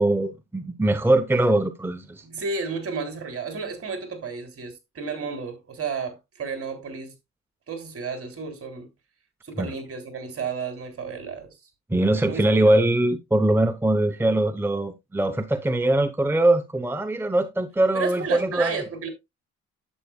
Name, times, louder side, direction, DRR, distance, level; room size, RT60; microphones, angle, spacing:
voice 1, 0.0-2.2 9.6-9.7 11.9-18.8, right 1 dB, 10° right, 0.9 m, -22 dB
voice 2, 2.2-7.1 7.7-8.9 9.4-11.5 12.3-12.8 17.9-19.1, right 5 dB, 50° right, 3.4 m, -32 dB
11.0 x 8.3 x 2.3 m
cardioid pair, 90°, 30 cm